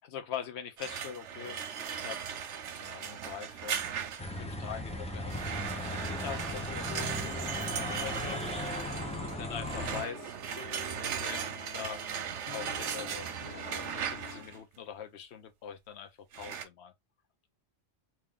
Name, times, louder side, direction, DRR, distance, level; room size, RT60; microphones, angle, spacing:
voice 1, 0.0-2.4 2.8-8.4 9.2-10.4 11.0-12.0 12.5-16.9, left 8 dB, 70° left, 1.0 m, -43 dB
sound 1, 0.8-4.4 5.3-14.6 16.3-16.6, right 8 dB, 85° right, 1.0 m, -38 dB
sound 2, 4.2-10.0, left 1 dB, 5° left, 0.5 m, -37 dB
sound 3, 6.9-14.6, left 4 dB, 85° left, 1.5 m, -48 dB
3.1 x 2.5 x 3.6 m
omnidirectional pair, 1.2 m